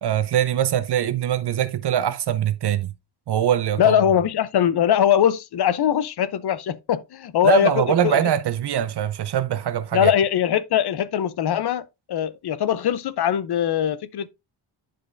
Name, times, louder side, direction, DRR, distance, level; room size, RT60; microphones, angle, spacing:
voice 1, 0.0-2.9 3.3-4.0 7.4-10.1, right 10 dB, 55° right, 0.8 m, -22 dB
voice 2, 3.8-8.2 9.9-14.3, left 10 dB, 55° left, 0.6 m, -21 dB
11.0 x 5.1 x 2.5 m
wide cardioid pair, 165°, 47 cm